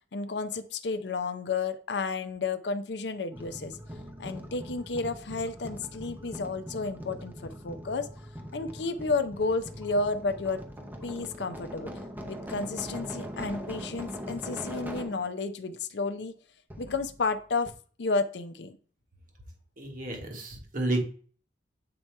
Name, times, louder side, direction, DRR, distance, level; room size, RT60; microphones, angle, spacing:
voice 1, 0.1-3.8 4.2-8.1 8.5-10.6 11.0-11.9 12.3-16.3 16.8-17.7 18.0-18.7, left 3 dB, 65° left, 9 dB, 0.6 m, -31 dB
sound 1, 3.3-15.3 16.7-17.4 17.7-17.8, equal, 10° right, 0.7 m, -41 dB
voice 2, 19.8-21.0, right 2 dB, 50° right, 2 dB, 1.4 m, -31 dB
7.6 x 2.8 x 4.5 m, 0.42 s
head